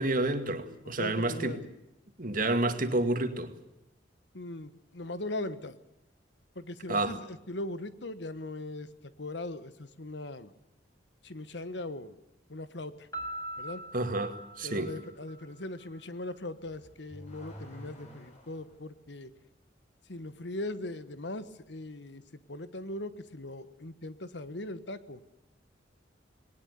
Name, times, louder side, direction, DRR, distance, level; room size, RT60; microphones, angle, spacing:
voice 1, 0.0-1.6 2.2-3.5 6.9-7.2 13.9-14.9, right 2 dB, 50° right, 2.2 m, -29 dB
voice 2, 0.8-1.6 4.3-5.8 6.5-10.5 11.2-12.2 12.5-13.1 13.6-13.8 14.6-19.3 20.1-25.2, left 2 dB, 65° left, 1.3 m, -39 dB
Piano, 13.1-15.9, right 1 dB, 20° left, 5.5 m, -42 dB
Car / Accelerating revving vroom, 16.5-18.8, equal, 40° left, 7.6 m, -49 dB
20.5 x 19.0 x 8.2 m
head